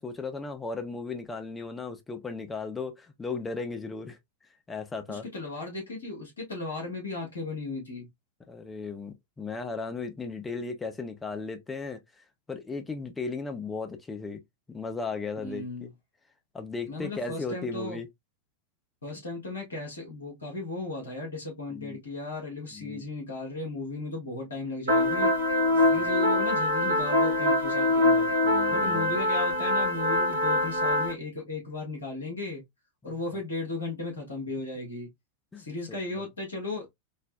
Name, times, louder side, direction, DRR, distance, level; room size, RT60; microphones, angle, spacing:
voice 1, 0.0-4.2 4.7-5.3 8.5-14.4 14.7-15.9 16.5-18.1 21.7-22.0 22.7-23.0 25.7-26.1 28.4-29.2 35.5-36.2, left 4 dB, 15° left, 0.6 m, -36 dB
voice 2, 5.1-8.1 15.4-15.9 16.9-18.0 19.0-25.3 25.7-28.3 28.7-32.6 33.0-35.1 35.6-36.9, left 2 dB, 75° left, 1.3 m, -36 dB
sound 1, 24.9-31.1, left 1 dB, 70° right, 0.8 m, -24 dB
4.0 x 2.1 x 2.2 m
figure-of-eight pair, 90°, 0 cm